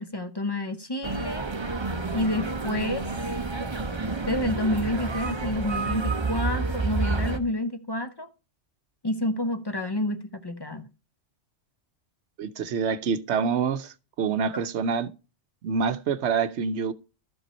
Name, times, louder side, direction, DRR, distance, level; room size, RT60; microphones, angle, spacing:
voice 1, 0.0-1.5 2.1-3.1 4.3-8.3 9.0-10.9 14.5-14.6, left 1 dB, 30° left, 0.5 m, -29 dB
sound 1, 1.0-7.4, right 3 dB, 25° right, 0.8 m, -29 dB
voice 2, 12.4-15.1 15.6-16.9, right 6 dB, 70° right, 1.0 m, -26 dB
13.0 x 5.5 x 4.2 m
omnidirectional pair, 1.2 m